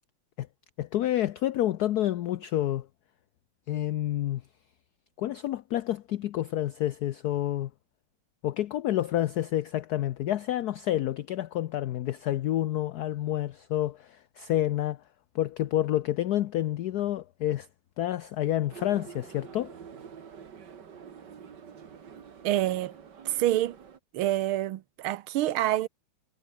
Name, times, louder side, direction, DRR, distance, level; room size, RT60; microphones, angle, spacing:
voice 1, 0.8-2.9 3.7-4.4 5.2-7.7 8.4-15.0 15.3-17.7 18.0-19.8, left 13 dB, 70° left, 1.0 m, -29 dB
sound 1, 18.7-24.0, right 7 dB, 55° right, 2.3 m, -47 dB
voice 2, 22.4-22.9 23.2-23.8 24.1-25.9, right 14 dB, 85° right, 1.7 m, -27 dB
omnidirectional pair, 2.3 m